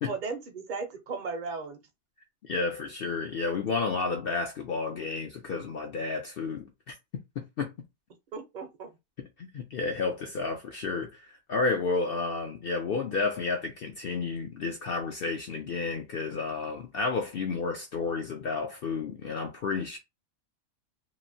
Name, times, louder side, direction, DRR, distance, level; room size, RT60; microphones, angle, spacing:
voice 1, 0.1-1.8 8.3-8.9, right 4 dB, 45° right, 0.7 m, -36 dB
voice 2, 2.4-6.7 7.4-7.7 9.4-20.0, left 4 dB, 60° left, 0.6 m, -31 dB
3.0 x 2.6 x 2.6 m
omnidirectional pair, 1.4 m